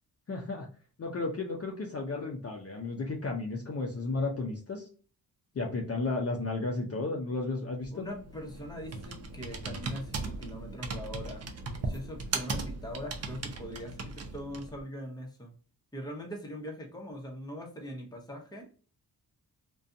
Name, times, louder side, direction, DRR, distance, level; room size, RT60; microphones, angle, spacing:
voice 1, 0.3-0.7 1.0-4.9 5.5-7.9, left 3 dB, 35° left, 0 dB, 0.6 m, -33 dB
Computer keyboard, 7.8-14.8, right 3 dB, 40° right, 0.6 m, -38 dB
voice 2, 7.9-11.5 11.8-15.5 15.9-18.7, equal, 10° left, 1 dB, 0.9 m, -41 dB
2.5 x 2.3 x 2.5 m, 0.40 s
cardioid pair, 55°, 40 cm